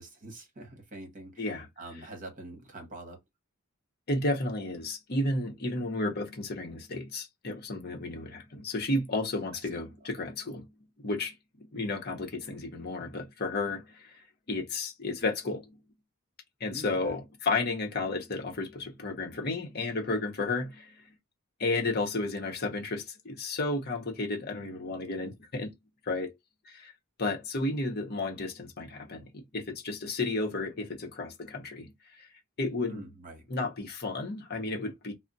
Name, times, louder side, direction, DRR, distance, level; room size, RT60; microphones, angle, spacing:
voice 1, 0.0-3.2 9.7-9.8 16.7-17.1 32.8-33.5, right 2 dB, 35° right, 1.1 m, -45 dB
voice 2, 1.4-1.7 4.1-10.7 11.0-15.8 16.6-21.1 21.6-25.7 26.0-26.3 26.7-26.9 27.2-32.3 32.6-33.1 33.5-35.1, left 2 dB, 45° left, 0.9 m, -33 dB
2.4 x 2.1 x 3.9 m
head